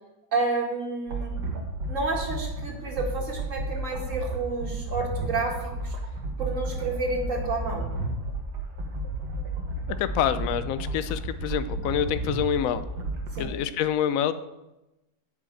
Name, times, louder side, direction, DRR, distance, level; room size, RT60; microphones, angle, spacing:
voice 1, 0.3-1.3 1.9-6.0 6.4-7.9 13.3-13.6, right 3 dB, 50° right, 1 dB, 2.3 m, -30 dB
sound 1, 1.1-13.4, right 2 dB, 85° right, 2.1 m, -32 dB
voice 2, 10.0-12.8 13.4-14.3, left 9 dB, 65° left, 12 dB, 1.0 m, -26 dB
9.9 x 5.4 x 7.8 m, 0.96 s
omnidirectional pair, 1.8 m